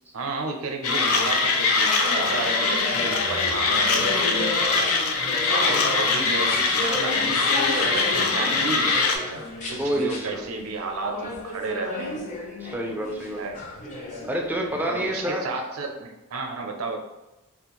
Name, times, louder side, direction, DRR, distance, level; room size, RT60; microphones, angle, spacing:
voice 1, 0.1-4.5 5.5-7.4 7.7-12.2 13.4-13.6 14.8-17.0, right 3 dB, 85° right, 3 dB, 0.5 m, -32 dB
Mechanisms, 0.8-9.2, left 4 dB, 85° left, 0.4 m, -23 dB
voice 2, 0.8-1.4 8.0-8.2 9.8-10.5 12.6-13.4 14.2-15.4, right 1 dB, 10° right, 0 dB, 0.3 m, -29 dB
sound 1, 1.2-15.1, left 2 dB, 35° left, 0.6 m, -33 dB
2.5 x 2.1 x 2.9 m, 1.0 s
head